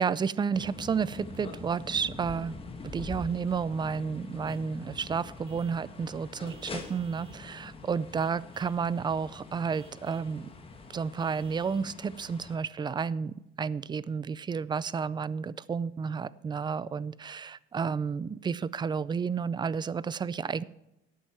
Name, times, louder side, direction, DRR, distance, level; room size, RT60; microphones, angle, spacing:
voice 1, 0.0-2.6 2.9-10.5 10.9-20.6, right 6 dB, 20° right, 19 dB, 0.4 m, -31 dB
sound 1, 0.5-12.6, left 3 dB, 25° left, 1.5 m, -44 dB
Vehicle horn car horn honking / Truck, 4.4-4.7 5.4-5.9 6.4-7.5 8.2-8.9 9.7-10.3 11.2-11.9, right 6 dB, 75° right, 2.9 m, -59 dB
13.0 x 8.5 x 4.4 m, 0.89 s
cardioid pair, 130°, 21 cm